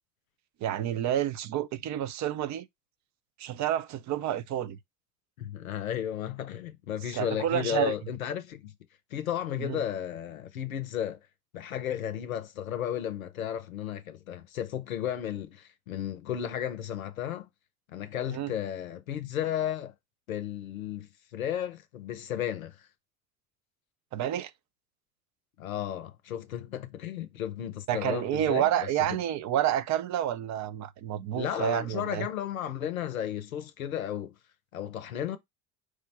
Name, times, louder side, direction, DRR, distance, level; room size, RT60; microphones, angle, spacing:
voice 1, 0.6-2.7 3.4-4.8 7.1-7.9 9.6-9.8 18.3-18.5 24.1-24.5 27.9-32.3, right 11 dB, 45° right, 0.5 m, -29 dB
voice 2, 5.4-8.7 9.1-11.2 11.5-17.5 17.9-19.9 20.3-22.8 25.6-28.9 31.3-34.4 34.7-35.4, left 10 dB, 90° left, 0.6 m, -34 dB
4.9 x 2.1 x 4.1 m
hypercardioid pair, 60°, 41 cm